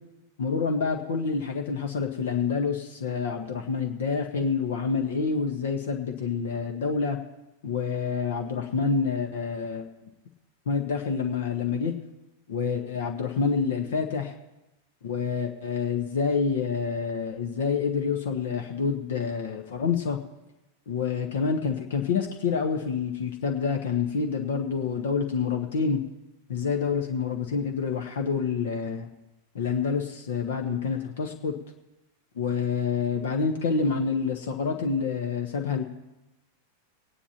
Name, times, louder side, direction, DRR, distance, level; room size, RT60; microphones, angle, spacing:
voice 1, 0.4-7.2 7.6-9.8 10.7-11.9 12.5-14.3 15.0-20.2 20.9-26.0 26.5-29.1 29.5-31.5 32.3-35.8, left 5 dB, 60° left, 4 dB, 1.2 m, -27 dB
23.0 x 9.9 x 2.9 m, 0.95 s
figure-of-eight pair, 90°, 0 cm